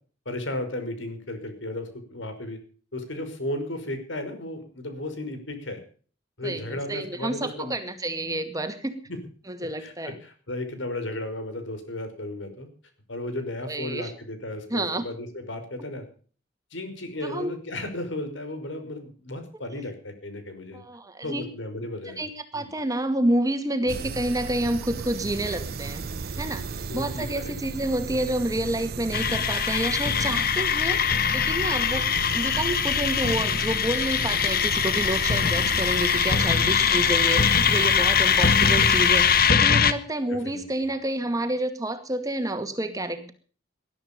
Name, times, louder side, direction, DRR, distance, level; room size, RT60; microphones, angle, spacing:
voice 1, 0.3-2.6 2.9-5.8 6.4-7.7 9.1-9.2 9.8-12.7 13.1-16.1 16.7-20.8 21.2-22.2 22.5-22.7 23.8-24.0 26.9-27.5 30.9-31.2 36.4-36.7 40.3-40.9, left 1 dB, 90° left, 8 dB, 5.4 m, -34 dB
voice 2, 6.4-9.0 9.5-10.2 13.7-14.1 14.7-15.1 17.2-17.5 20.7-21.5 22.1-26.0 26.4-26.7 26.9-31.0 31.3-32.0 32.3-43.3, right 1 dB, 20° right, 8 dB, 2.2 m, -29 dB
sound 1, 23.9-39.5, right 4 dB, 55° right, 0.7 m, -34 dB
sound 2, 29.1-39.9, left 7 dB, 55° left, 1.4 m, -22 dB
20.5 x 12.5 x 5.3 m, 0.42 s
head